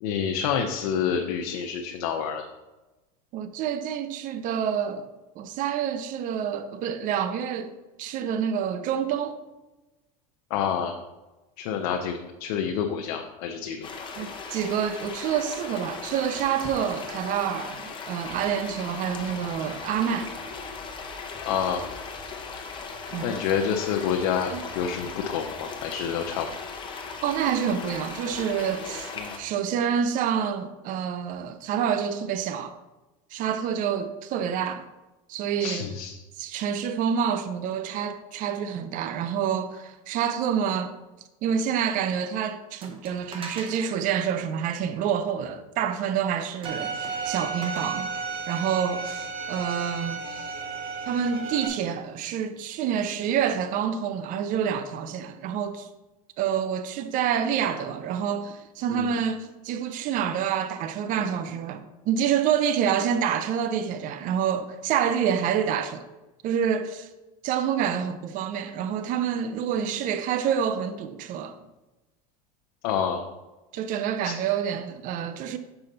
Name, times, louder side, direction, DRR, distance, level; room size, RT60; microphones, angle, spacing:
voice 1, 0.0-2.4 10.5-10.9 11.6-13.9 21.4-21.8 23.2-26.5 29.2-29.4 35.6-36.2 58.9-59.2 72.8-73.2 74.2-74.4, left 7 dB, 75° left, 0.7 m, -28 dB
voice 2, 3.3-5.1 5.4-9.4 14.2-20.4 23.1-23.4 24.5-24.6 27.2-32.7 33.3-34.9 35.3-35.8 36.4-41.0 41.4-48.1 48.5-50.5 51.1-55.9 56.4-66.1 66.4-67.1 67.4-71.6 73.7-75.6, right 8 dB, 45° right, 0.5 m, -27 dB
sound 1, 13.8-29.4, left 4 dB, 25° left, 1.1 m, -38 dB
sound 2, 42.8-44.0 46.6-47.8, right 3 dB, 30° right, 1.0 m, -41 dB
Bowed string instrument, 46.6-51.7, right 5 dB, 75° right, 1.1 m, -33 dB
6.9 x 5.4 x 3.9 m
supercardioid pair, 125°, 19 cm